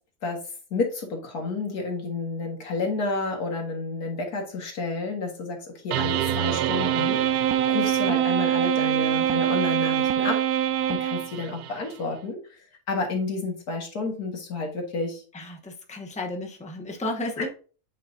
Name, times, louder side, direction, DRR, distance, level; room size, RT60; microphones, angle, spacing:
voice 1, 0.7-10.3 10.9-12.6 12.9-15.2 17.4-17.5, left 3 dB, 85° left, 1 dB, 2.1 m, -30 dB
sound 1, 5.9-11.7, right 10 dB, 80° right, 1.1 m, -24 dB
voice 2, 15.3-17.5, left 2 dB, 5° left, 2 dB, 0.7 m, -33 dB
9.3 x 5.0 x 2.6 m, 0.39 s
omnidirectional pair, 1.6 m